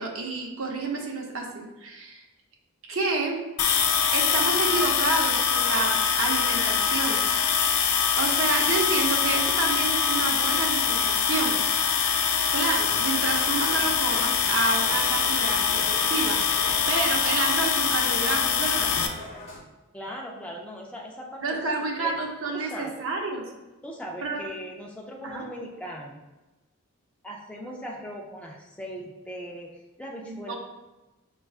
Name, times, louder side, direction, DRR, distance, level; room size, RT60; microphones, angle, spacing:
voice 1, 0.0-2.2 2.9-3.4 4.1-7.2 8.2-11.6 12.5-18.9 21.4-23.4 24.2-24.4 25.2-25.4 30.3-30.5, right 3 dB, 65° right, 0 dB, 0.7 m, -29 dB
sound 1, 3.6-19.1, left 7 dB, 90° left, 0.4 m, -24 dB
sound 2, 12.7-19.6, left 1 dB, 30° left, 0.9 m, -42 dB
voice 2, 19.9-22.1 22.5-23.0 23.8-26.2 27.2-29.7 30.0-30.5, equal, 5° left, -2 dB, 0.3 m, -39 dB
5.3 x 2.3 x 2.3 m, 1.0 s
head